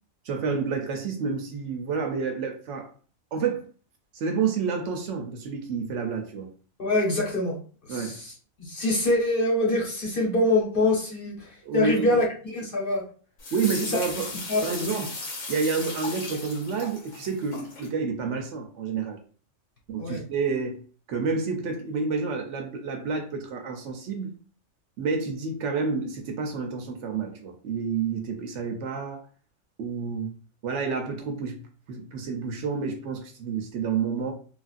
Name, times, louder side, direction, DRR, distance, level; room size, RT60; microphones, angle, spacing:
voice 1, 0.2-2.9 3.3-3.7 4.1-6.5 7.9-8.2 11.6-12.2 13.5-14.3 14.6-15.1 15.5-19.2 19.9-20.8 21.1-24.3 25.0-29.2 29.8-30.3 30.6-34.3, right 5 dB, 70° right, 0.9 m, -29 dB
voice 2, 6.8-7.6 7.9-8.3 8.6-13.0 14.5-14.8 20.0-20.2, left 2 dB, 50° left, 0.9 m, -25 dB
sound 1, 13.4-17.9, left 3 dB, 90° left, 1.2 m, -36 dB
3.2 x 2.4 x 2.4 m
omnidirectional pair, 1.4 m